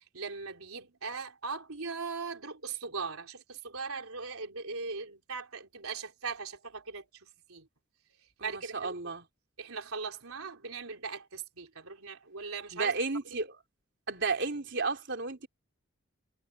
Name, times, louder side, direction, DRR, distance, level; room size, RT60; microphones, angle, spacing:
voice 1, 0.0-7.7 8.4-9.0 9.6-12.9, right 5 dB, 90° right, 3.8 m, -39 dB
voice 2, 8.4-9.2 12.7-13.6 14.1-15.5, right 4 dB, 55° right, 3.9 m, -33 dB
head